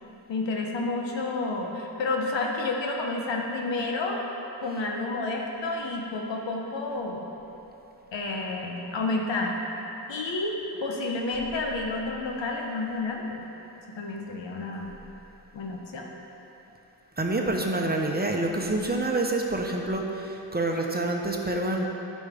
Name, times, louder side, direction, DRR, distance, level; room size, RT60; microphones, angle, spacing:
voice 1, 0.3-4.2 4.6-7.3 8.1-9.6 10.1-10.5 10.8-13.4 14.0-14.9 15.5-16.1, left 3 dB, 90° left, 0 dB, 0.9 m, -30 dB
voice 2, 17.2-21.8, right 2 dB, 20° right, 1 dB, 0.9 m, -27 dB
10.5 x 5.3 x 3.5 m, 3.0 s
cardioid pair, 55°, 43 cm